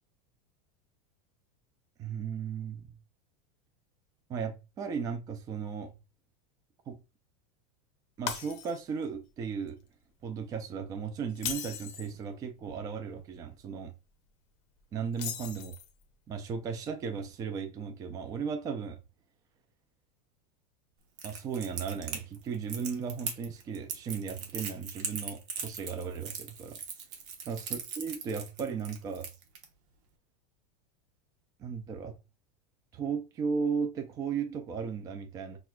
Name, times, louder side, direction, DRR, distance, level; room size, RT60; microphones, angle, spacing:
voice 1, 2.0-3.0 4.3-5.9 6.9-7.0 8.2-9.8 10.2-13.9 14.9-15.7 16.3-19.0 21.2-26.8 27.5-29.3 31.6-32.1 32.9-35.6, right 6 dB, 20° right, 0.4 m, -36 dB
Shatter, 8.3-9.1 9.5-9.7 11.3-12.2 15.1-16.0, left 9 dB, 35° left, 0.6 m, -38 dB
Crackle, 21.2-29.6, right 6 dB, 50° right, 1.0 m, -39 dB
6.1 x 2.4 x 2.2 m
supercardioid pair, 160°, 18 cm